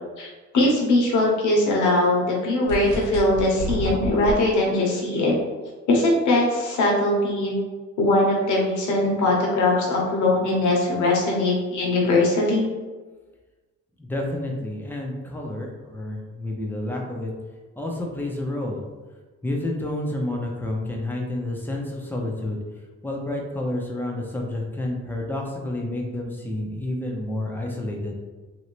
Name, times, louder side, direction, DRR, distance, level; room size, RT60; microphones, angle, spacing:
voice 1, 0.5-5.3 5.9-7.5 8.0-12.7, left 2 dB, 75° left, -2 dB, 1.1 m, -21 dB
sound 1, 2.7-4.3, left 1 dB, 85° right, 1.2 m, -29 dB
voice 2, 14.0-17.3 17.8-18.8 19.4-22.6 23.0-28.1, left 1 dB, 5° left, 0 dB, 0.7 m, -29 dB
3.1 x 2.7 x 3.1 m, 1.3 s
cardioid pair, 90°, 30 cm